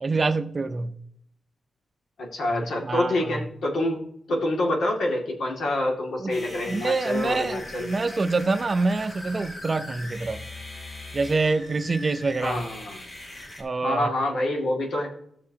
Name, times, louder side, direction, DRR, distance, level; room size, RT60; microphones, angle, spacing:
voice 1, 0.0-0.9 2.5-3.5 6.2-6.4 6.7-10.4 11.1-12.7 13.6-14.1, right 3 dB, 30° right, 0.6 m, -26 dB
voice 2, 2.2-4.0 4.3-7.9 12.4-13.0 13.8-15.1, left 1 dB, 80° left, 2.3 m, -26 dB
sound 1, 6.3-13.6, left 1 dB, 35° left, 3.6 m, -40 dB
17.0 x 6.6 x 2.9 m
wide cardioid pair, 170°, 0 cm